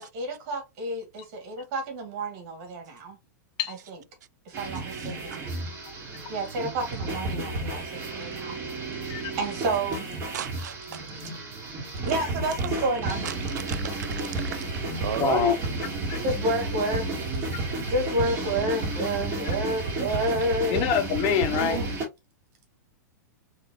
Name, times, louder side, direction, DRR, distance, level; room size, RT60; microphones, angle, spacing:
voice 1, 0.0-3.2 3.7-4.0 4.5-5.5 6.3-8.6 8.9-10.1 12.0-13.3 16.2-17.2 17.9-20.8 21.5-22.0, right 1 dB, 50° right, 1.9 m, -30 dB
sound 1, 4.5-22.0, right 2 dB, 25° right, 2.4 m, -32 dB
voice 2, 4.9-5.4 10.3-11.0 13.2-15.5, right 10 dB, 70° right, 0.4 m, -35 dB
voice 3, 15.2-15.6 16.1-16.2 20.7-21.8, left 7 dB, 40° left, 0.8 m, -25 dB
3.8 x 3.2 x 2.8 m
hypercardioid pair, 110°, 10 cm